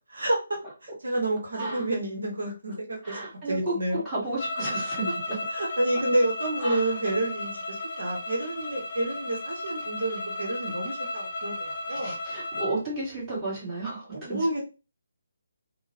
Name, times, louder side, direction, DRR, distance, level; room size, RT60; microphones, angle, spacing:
voice 1, 0.1-3.2 3.5-4.0 5.5-12.2 14.1-14.6, right 1 dB, 65° right, 0 dB, 0.9 m, -29 dB
voice 2, 3.0-5.4 6.6-6.9 11.9-14.5, right 2 dB, 10° right, -9 dB, 1.7 m, -32 dB
sound 1, 4.4-12.8, left 2 dB, 50° left, 0.7 m, -34 dB
3.7 x 2.1 x 2.8 m, 0.32 s
figure-of-eight pair, 145°, 0 cm